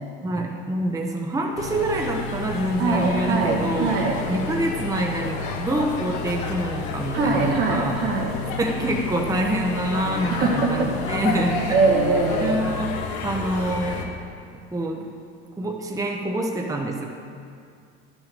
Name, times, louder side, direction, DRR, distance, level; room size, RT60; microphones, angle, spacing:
voice 1, 0.2-4.0 4.3-8.0 8.6-11.8 12.3-12.9 13.2-14.1 14.7-15.1 15.6-17.0, right 1 dB, 10° right, 1 dB, 0.9 m, -26 dB
sound 1, 1.6-14.0, left 4 dB, 60° left, 1.3 m, -30 dB
voice 2, 2.8-4.2 7.1-8.3 10.3-10.9 11.7-12.6, right 3 dB, 75° right, -3 dB, 2.2 m, -22 dB
11.0 x 6.2 x 5.2 m, 2.3 s
hypercardioid pair, 90°, 34 cm